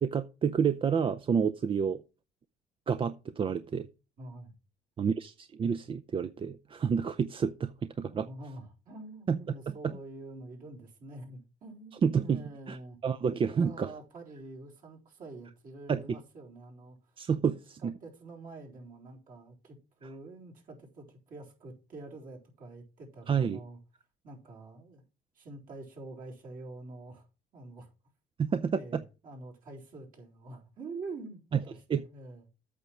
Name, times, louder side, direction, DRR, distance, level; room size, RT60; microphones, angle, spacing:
voice 1, 0.0-2.0 2.9-3.9 5.0-7.7 8.0-8.3 9.3-9.4 9.8-9.9 12.0-12.8 13.0-13.9 15.9-16.0 17.2-17.9 23.3-23.6 28.4-29.0 31.5-31.6 31.9-32.0, right 6 dB, 30° right, 0.5 m, -29 dB
voice 2, 4.2-4.5 8.1-13.0 13.5-17.2 17.8-23.8 24.2-25.0 25.3-27.3 27.5-27.9 28.7-32.4, right 2 dB, 55° right, 4.0 m, -46 dB
8.4 x 5.8 x 6.1 m
cardioid pair, 110°, 17 cm